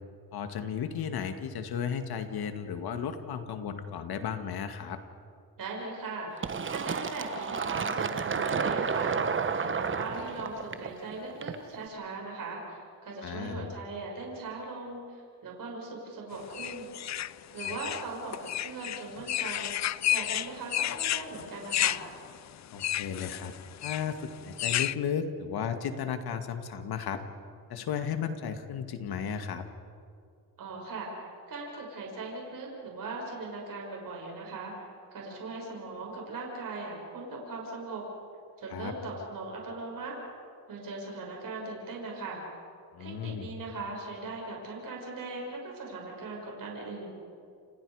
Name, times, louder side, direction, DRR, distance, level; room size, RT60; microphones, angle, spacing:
voice 1, 0.3-5.0 13.2-13.7 17.6-17.7 22.7-23.5 23.8-27.2 27.7-29.6 38.7-38.9 42.9-43.5, left 7 dB, 65° left, 7 dB, 2.2 m, -34 dB
voice 2, 5.6-9.2 9.6-16.9 17.5-19.7 20.1-22.1 30.6-34.7 35.1-38.0 38.6-40.1 40.7-42.4 43.0-47.1, right 3 dB, 55° right, -1 dB, 6.6 m, -39 dB
Fill (with liquid), 6.4-11.8, right 5 dB, 30° right, 1.2 m, -31 dB
sound 1, 16.5-24.9, left 12 dB, 45° left, 0.5 m, -31 dB
29.0 x 27.0 x 5.1 m, 2.3 s
cardioid pair, 100°, 40 cm